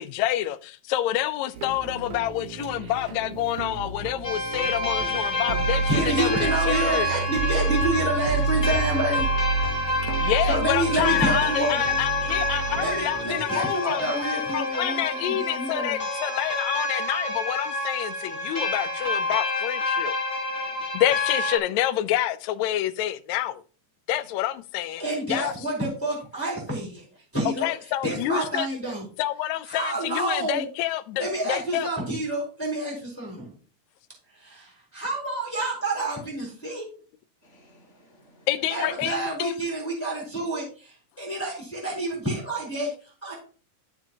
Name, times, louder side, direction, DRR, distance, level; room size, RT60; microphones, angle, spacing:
voice 1, 0.0-7.1 10.2-14.0 14.5-20.1 20.9-23.6 24.1-25.0 25.3-25.5 27.6-28.7 29.2-31.9 38.5-39.5, left 13 dB, 80° left, 1.7 m, -28 dB
sound 1, 1.5-13.4, right 4 dB, 65° right, 1.4 m, -30 dB
sound 2, 4.2-21.6, left 2 dB, 25° left, 1.3 m, -28 dB
voice 2, 4.9-5.4 5.9-9.2 10.1-11.8 12.8-16.0 25.0-27.0 27.3-27.7 28.0-29.0 29.7-30.7 31.2-33.5 34.4-36.9 38.7-42.9 43.2-43.3, right 1 dB, 5° left, 3.2 m, -28 dB
voice 3, 9.8-10.2 20.5-20.9 35.5-35.7 37.4-38.5, left 2 dB, 80° right, 0.6 m, -55 dB
11.5 x 7.2 x 2.9 m
omnidirectional pair, 3.8 m